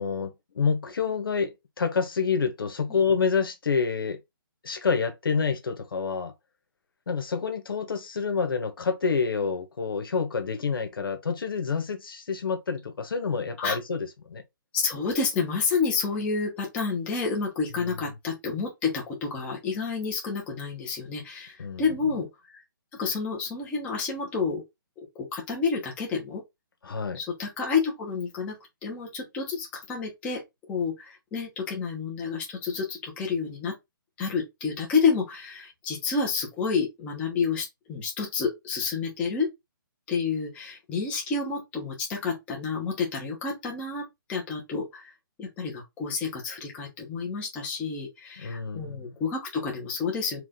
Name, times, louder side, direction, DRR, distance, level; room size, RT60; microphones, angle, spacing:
voice 1, 0.0-4.2 4.6-6.3 7.1-14.4 21.6-21.9 26.8-27.2 48.4-49.1, left 5 dB, 80° left, 1.3 m, -28 dB
voice 2, 14.7-22.3 23.0-24.6 25.1-26.4 27.1-28.6 28.8-30.4 30.7-33.7 34.2-39.5 40.1-45.1 45.4-50.4, left 5 dB, 10° left, 1.0 m, -29 dB
4.9 x 2.6 x 3.7 m
hypercardioid pair, 170°, 12 cm